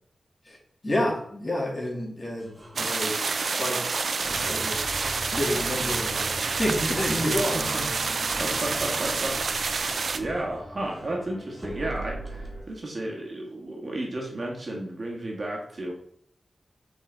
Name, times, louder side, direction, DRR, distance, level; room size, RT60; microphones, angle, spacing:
voice 1, 0.8-3.2 3.6-3.8 4.4-4.8 5.3-7.7, left 1 dB, 35° left, -3 dB, 2.3 m, -29 dB
sound 1, 2.4-11.2 11.6-12.6, right 2 dB, 20° right, 1.7 m, -44 dB
sound 2, 2.8-10.2, right 4 dB, 70° right, 0.5 m, -28 dB
sound 3, 4.2-12.7, equal, 10° left, 1.3 m, -40 dB
voice 2, 7.5-7.9 8.4-9.6 10.1-15.9, right 1 dB, 50° right, -1 dB, 1.7 m, -33 dB
5.7 x 4.2 x 4.0 m, 0.69 s
cardioid pair, 65°, 0 cm